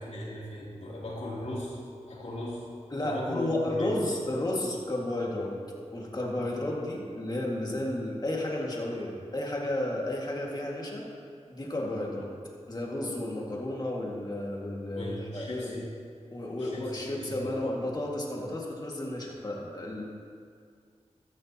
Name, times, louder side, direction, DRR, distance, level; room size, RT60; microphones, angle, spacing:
voice 1, 0.0-2.7 3.0-4.0 14.9-15.9 16.6-17.6, left 1 dB, 90° left, -6 dB, 3.2 m, -38 dB
voice 2, 2.9-5.6 5.9-11.1 11.5-12.3 12.7-15.7 16.3-20.0, left 1 dB, 35° left, -2 dB, 2.1 m, -32 dB
14.5 x 13.5 x 3.0 m, 2.2 s
wide cardioid pair, 105°, 12 cm